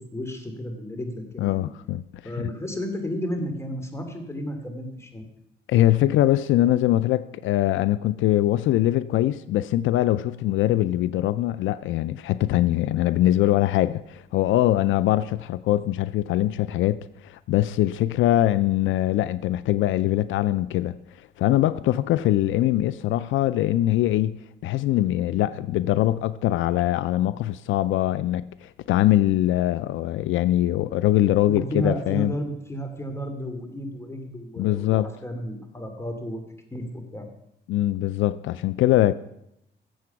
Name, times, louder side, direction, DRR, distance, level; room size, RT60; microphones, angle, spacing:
voice 1, 0.0-1.7 2.2-5.2 25.3-25.6 31.5-36.4 36.7-37.3, equal, 15° left, 2.5 m, -33 dB
voice 2, 1.4-2.3 5.7-21.0 21.4-32.3 34.6-35.1 37.7-39.1, left 14 dB, 80° left, 0.4 m, -22 dB
14.5 x 7.6 x 5.9 m
cardioid pair, 90°, 20 cm